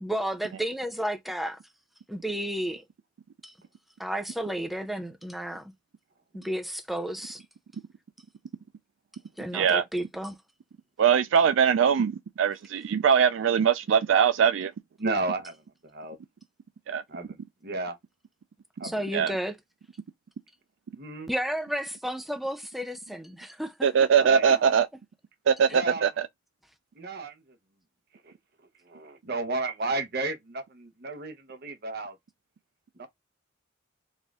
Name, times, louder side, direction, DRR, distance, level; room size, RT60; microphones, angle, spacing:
voice 1, 0.0-1.6 2.1-2.8 3.4-3.5 4.0-5.7 6.3-7.4 9.4-10.4 18.8-19.6 21.3-23.9 24.5-24.6 25.7-25.8, equal, ahead, 0.5 m, -32 dB
voice 2, 9.5-9.8 11.0-12.1 12.4-14.7 16.9-17.0 19.1-19.3 23.8-24.9 25.5-26.1, right 7 dB, 70° right, 0.3 m, -21 dB
voice 3, 15.0-15.6 15.8-16.2 17.1-18.0 18.8-19.4 21.0-21.3 24.2-24.7 25.7-26.0 27.0-27.4 28.2-28.3 28.9-32.2 33.0-33.1, right 2 dB, 55° right, 0.9 m, -33 dB
4.2 x 2.5 x 3.5 m
head